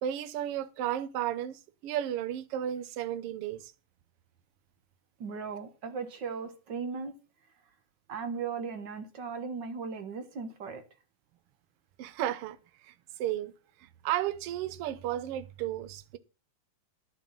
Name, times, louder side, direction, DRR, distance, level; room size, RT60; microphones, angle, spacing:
voice 1, 0.0-3.7 12.0-12.6 12.9-13.0 13.2-13.5 14.0-16.2, right 11 dB, 70° right, 1.5 m, -33 dB
voice 2, 5.2-7.2 8.1-10.8, right 5 dB, 50° right, 1.4 m, -37 dB
10.5 x 6.4 x 7.2 m
omnidirectional pair, 3.4 m